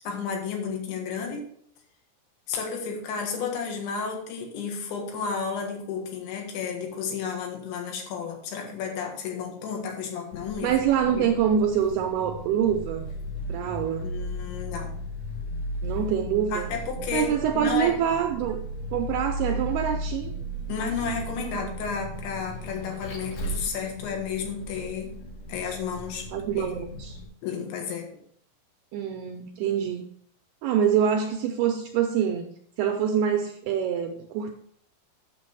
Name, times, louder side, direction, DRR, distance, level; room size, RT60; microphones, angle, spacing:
voice 1, 0.1-1.5 2.5-10.8 11.1-11.3 14.0-14.9 16.5-18.0 20.7-25.1 25.5-26.3 26.6-26.7 27.4-28.1, left 6 dB, 80° left, 2 dB, 3.9 m, -32 dB
Vehicle, 10.3-27.2, equal, 55° left, 2.7 m, -36 dB
voice 2, 10.6-13.1 13.5-14.1 15.8-16.7 17.1-18.6 18.9-20.3 26.3-27.2 28.9-30.1 30.6-32.5 32.8-34.5, right 8 dB, 80° right, 4 dB, 2.3 m, -25 dB
9.0 x 6.9 x 4.5 m, 0.64 s
omnidirectional pair, 5.3 m